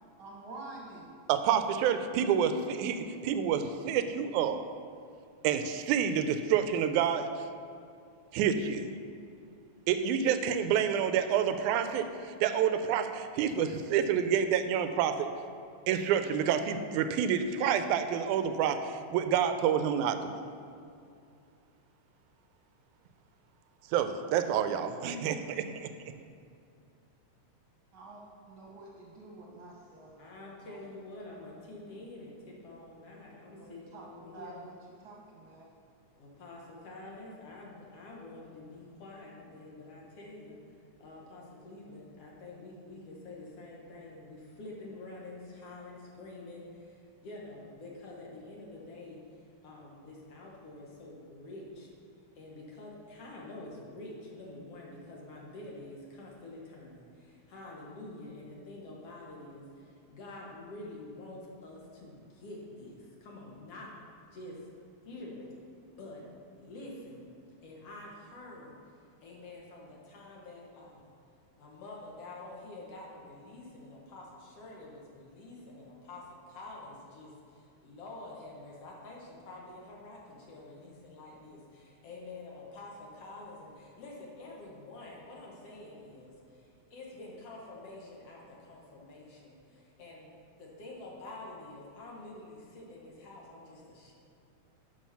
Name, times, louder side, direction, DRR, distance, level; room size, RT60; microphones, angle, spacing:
voice 1, 0.2-1.1 27.9-30.2 30.7-30.8 33.5-34.7 35.0-35.7, right 2 dB, 55° right, -3 dB, 1.6 m, -48 dB
voice 2, 1.3-4.6 5.4-7.3 8.3-8.9 9.9-12.1 12.4-15.3 15.9-20.3 23.9-25.9, right 8 dB, 85° right, 9 dB, 2.0 m, -28 dB
voice 3, 30.2-34.6 36.2-40.6 41.0-49.2 49.6-51.9 52.4-63.9 64.3-64.6 65.1-65.5 66.0-66.2 66.6-67.2 67.6-68.8 69.2-71.1 71.6-86.6 86.9-94.1, left 2 dB, 60° left, -3 dB, 2.2 m, -47 dB
10.5 x 5.5 x 5.7 m, 2.5 s
omnidirectional pair, 3.4 m